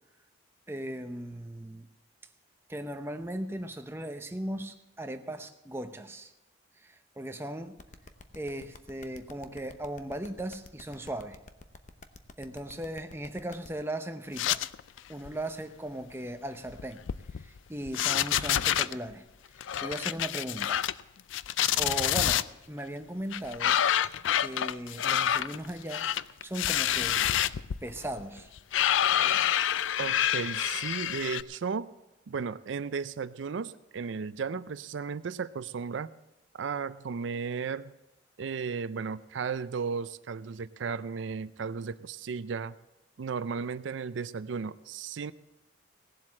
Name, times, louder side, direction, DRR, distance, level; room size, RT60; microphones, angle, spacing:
voice 1, 0.7-1.9 2.7-6.3 6.8-7.8 8.3-11.4 12.4-14.6 15.1-17.0 17.4-19.2 19.8-20.8 21.8-23.8 24.4-27.3 27.8-28.5 29.3-29.4, right 1 dB, 10° right, 7 dB, 0.7 m, -38 dB
sound 1, 7.8-13.7, left 3 dB, 40° left, 0.8 m, -49 dB
sound 2, 14.4-15.0 15.3-15.5 16.7-17.6 17.9-18.9 19.6-21.0 21.3-22.4 23.3-31.4, left 10 dB, 85° left, 0.4 m, -27 dB
voice 2, 30.0-31.9 32.3-36.1 36.6-37.9 38.4-42.7 43.2-45.3, right 5 dB, 80° right, 15 dB, 0.4 m, -35 dB
17.0 x 7.6 x 7.4 m, 1.0 s
head